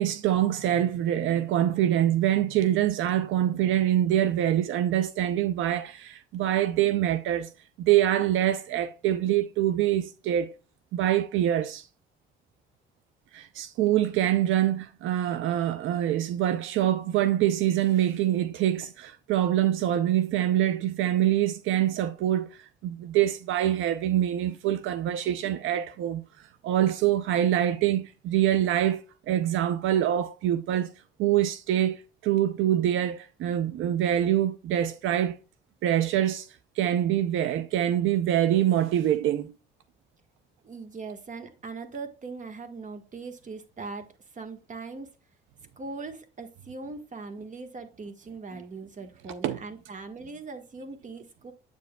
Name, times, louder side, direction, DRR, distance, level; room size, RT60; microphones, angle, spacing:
voice 1, 0.0-7.5 7.8-10.6 10.9-11.9 13.3-30.9 31.2-35.4 35.8-39.5 48.5-48.6 49.4-49.6, right 11 dB, 80° right, 0.5 m, -25 dB
voice 2, 40.6-45.1 45.8-51.5, right 4 dB, 40° right, 1.4 m, -40 dB
8.1 x 6.9 x 2.2 m
cardioid pair, 90°, 20 cm